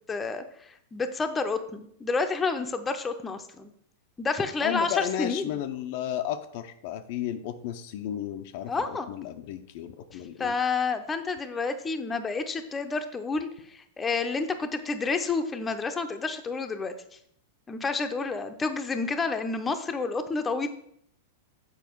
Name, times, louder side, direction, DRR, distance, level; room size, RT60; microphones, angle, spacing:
voice 1, 0.1-0.4 0.9-3.7 4.2-5.5 8.7-9.1 10.4-16.9 17.7-20.7, left 4 dB, 15° left, 7 dB, 0.6 m, -29 dB
voice 2, 4.6-10.5, left 10 dB, 55° left, 7 dB, 0.5 m, -33 dB
7.1 x 4.6 x 4.5 m, 0.68 s
hypercardioid pair, 120°, 0 cm